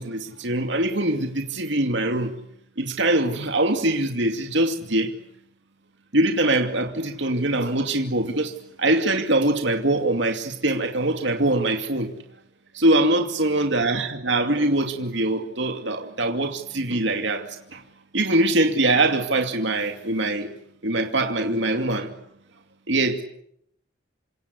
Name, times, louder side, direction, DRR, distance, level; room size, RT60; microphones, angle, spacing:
voice 1, 0.0-2.3 2.8-5.1 6.1-12.1 12.7-17.8 18.1-20.5 20.8-22.1 22.9-23.2, right 2 dB, 65° right, 2.5 m, -23 dB
28.0 x 25.5 x 8.3 m
head